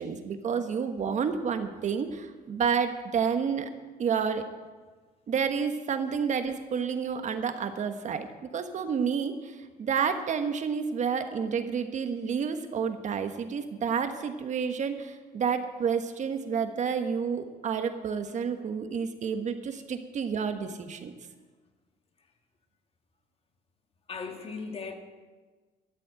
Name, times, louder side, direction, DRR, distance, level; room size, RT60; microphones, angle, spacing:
voice 1, 0.0-3.7 4.0-4.5 5.3-8.3 8.5-21.1, right 6 dB, 45° right, 8 dB, 1.3 m, -30 dB
voice 2, 2.1-2.7 5.9-6.0 19.6-20.1 24.1-24.9, left 5 dB, 35° left, 5 dB, 1.8 m, -41 dB
13.0 x 7.7 x 8.7 m, 1.4 s
cardioid pair, 110°, 17 cm